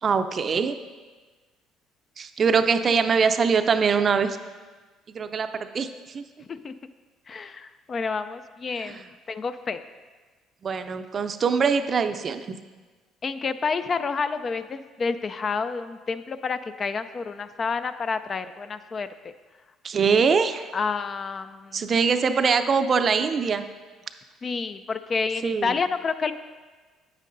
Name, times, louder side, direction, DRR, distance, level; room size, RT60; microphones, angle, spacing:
voice 1, 0.0-0.8 2.2-4.4 5.1-6.2 8.8-9.0 10.6-12.6 19.8-20.7 21.7-23.7 25.4-25.8, right 5 dB, 45° right, 9 dB, 0.5 m, -23 dB
voice 2, 7.3-9.8 13.2-19.1 20.7-21.9 24.4-26.3, left 5 dB, 40° left, 11 dB, 0.4 m, -29 dB
9.0 x 8.2 x 2.6 m, 1.3 s
hypercardioid pair, 65°, 0 cm